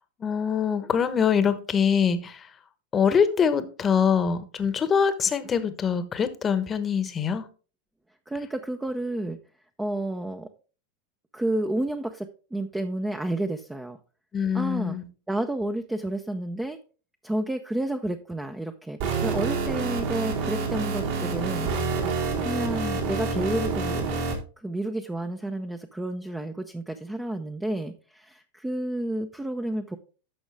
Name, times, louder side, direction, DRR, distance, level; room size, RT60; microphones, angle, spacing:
voice 1, 0.2-2.5 2.9-7.4 14.3-15.1, left 7 dB, 25° left, 1.1 m, -24 dB
voice 2, 8.3-9.4 9.8-10.5 11.3-14.0 14.5-15.0 15.3-16.8 17.2-22.1 22.4-24.2 24.6-30.0, right 1 dB, 10° right, 0.7 m, -30 dB
sound 1, 19.0-24.3, right 4 dB, 65° right, 3.3 m, -28 dB
11.5 x 6.3 x 3.4 m
hypercardioid pair, 105°, 0 cm